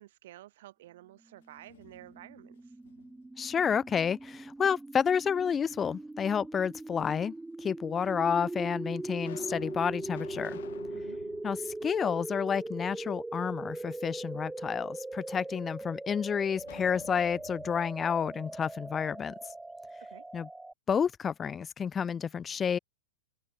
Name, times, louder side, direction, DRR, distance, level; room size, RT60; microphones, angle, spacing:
voice 1, 0.0-2.7 10.9-11.2 20.0-20.2, right 15 dB, 65° right, 4.2 m, -51 dB
sound 1, 1.4-2.4 2.8-4.1 5.4-6.2 7.0-7.1 8.0-8.1 8.7-12.8 13.1-13.2 16.6-19.4, left 13 dB, 70° left, 7.3 m, -52 dB
sound 2, 1.6-20.7, right 2 dB, 5° right, 1.0 m, -41 dB
voice 2, 3.4-7.3 7.6-10.6 11.4-19.3 20.3-20.5 20.9-22.8, left 7 dB, 20° left, 1.4 m, -30 dB
open air
hypercardioid pair, 115°, 0 cm